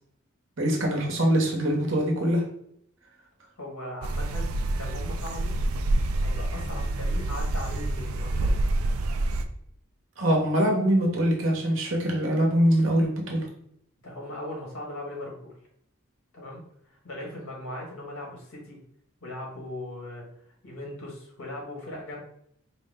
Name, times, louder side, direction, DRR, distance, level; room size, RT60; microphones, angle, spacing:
voice 1, 0.6-2.4 10.2-13.5, equal, 60° right, 0 dB, 1.1 m, -23 dB
voice 2, 3.6-5.5 6.2-8.7 14.0-15.5 16.3-16.6 16.9-18.8 19.2-20.2 20.6-22.2, left 1 dB, 85° left, -2 dB, 1.7 m, -39 dB
sound 1, 4.0-9.5, right 2 dB, 90° right, 0.4 m, -27 dB
4.8 x 2.2 x 3.6 m, 0.69 s
head